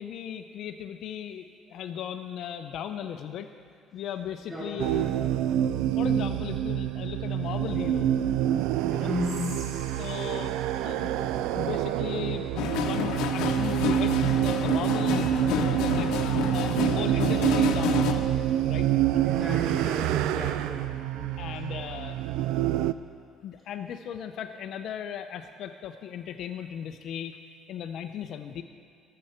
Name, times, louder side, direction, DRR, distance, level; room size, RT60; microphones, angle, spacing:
voice 1, 0.0-3.5 3.9-5.2 6.0-8.2 8.9-9.1 10.0-10.6 10.8-16.2 16.5-19.4 20.4-20.5 21.4-22.2 23.4-27.4 27.7-28.6, left 9 dB, 55° left, 7 dB, 0.5 m, -37 dB
sound 1, 4.8-22.9, right 11 dB, 90° right, 0.3 m, -27 dB
voice 2, 9.0-9.6 19.2-21.4, left 1 dB, 20° right, -7 dB, 3.5 m, -34 dB
Whispering, 9.1-12.4, right 2 dB, 60° right, 2.5 m, -48 dB
sound 2, 12.6-18.1, left 7 dB, 85° left, 0.8 m, -30 dB
19.5 x 7.6 x 4.3 m, 2.2 s
cardioid pair, 160°, 0 cm